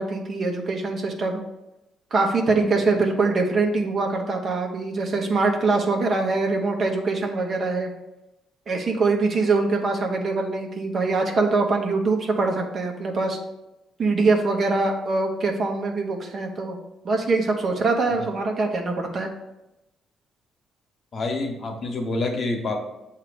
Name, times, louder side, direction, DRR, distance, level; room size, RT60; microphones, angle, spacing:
voice 1, 0.0-1.4 2.1-7.9 8.7-13.4 14.0-16.8 17.0-19.3, right 3 dB, 50° right, 2 dB, 1.1 m, -23 dB
voice 2, 21.1-22.8, left 2 dB, 50° left, 2 dB, 1.2 m, -27 dB
7.4 x 2.9 x 5.1 m, 0.93 s
cardioid pair, 90°, 0 cm